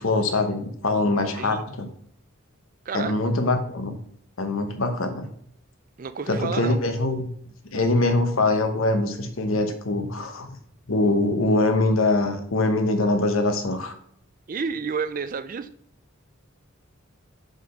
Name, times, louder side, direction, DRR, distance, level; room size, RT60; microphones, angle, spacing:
voice 1, 0.0-1.9 2.9-4.0 4.4-5.3 6.3-7.3 7.7-10.5 10.9-14.0, left 2 dB, 80° left, 7 dB, 1.0 m, -23 dB
voice 2, 6.0-6.8 14.5-15.7, right 5 dB, 40° right, 11 dB, 0.4 m, -30 dB
4.9 x 4.3 x 5.1 m, 0.67 s
head